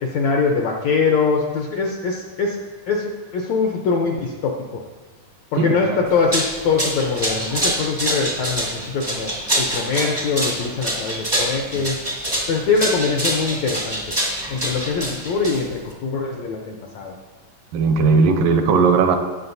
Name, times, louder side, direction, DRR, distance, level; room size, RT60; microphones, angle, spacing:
voice 1, 0.0-2.6 2.9-4.8 5.5-9.3 9.6-12.0 12.5-14.0 14.5-17.2, left 4 dB, 75° left, 1 dB, 1.6 m, -23 dB
voice 2, 5.6-6.0 17.7-19.2, right 4 dB, 75° right, 6 dB, 2.4 m, -17 dB
sound 1, 6.1-15.9, equal, 25° right, 0.5 m, -25 dB
18.5 x 7.4 x 2.7 m, 1.3 s
omnidirectional pair, 4.0 m